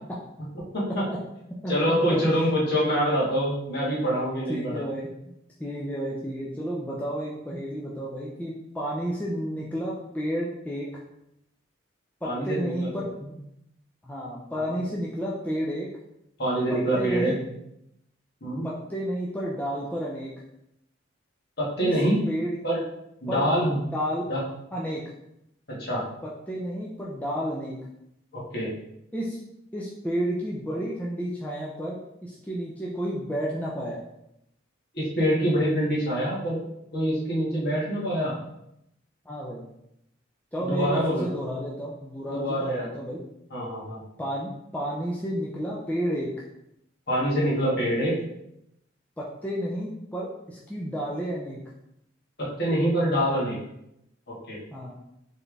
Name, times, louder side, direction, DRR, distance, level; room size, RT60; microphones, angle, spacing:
voice 1, 1.7-4.9 12.2-12.9 14.7-14.8 16.4-17.4 18.4-18.7 21.6-22.2 22.6-22.8 23.2-23.8 24.3-24.4 25.8-26.1 28.3-28.7 34.9-36.6 36.9-38.3 40.6-41.3 42.2-42.9 43.5-44.0 47.1-48.2 52.4-53.6 54.3-54.6, equal, 55° left, -6 dB, 1.7 m, -25 dB
voice 2, 4.5-5.1 5.6-10.9 12.2-13.3 14.0-15.9 16.7-17.3 18.6-20.3 21.8-21.9 22.3-22.6 23.3-24.3 24.7-25.0 26.2-27.8 29.1-29.4 29.7-34.0 39.3-39.6 40.5-43.2 44.2-46.3 49.2-51.6 54.7-54.9, equal, 10° left, -5 dB, 0.5 m, -31 dB
4.4 x 3.3 x 3.4 m, 0.80 s
head